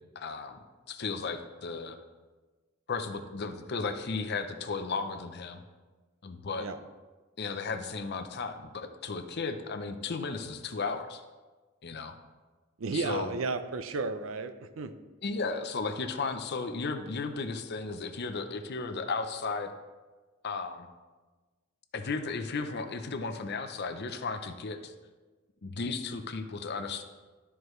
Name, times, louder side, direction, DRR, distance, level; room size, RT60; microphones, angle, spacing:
voice 1, 0.2-0.6 0.9-2.0 2.9-5.6 6.2-6.7 7.4-11.2 11.8-12.1 12.9-13.3 15.2-19.7 20.4-20.9 21.9-24.9 25.6-27.0, left 4 dB, 55° left, 7 dB, 0.6 m, -35 dB
voice 2, 12.8-15.0, right 4 dB, 90° right, 10 dB, 0.6 m, -33 dB
12.5 x 4.7 x 3.1 m, 1.3 s
head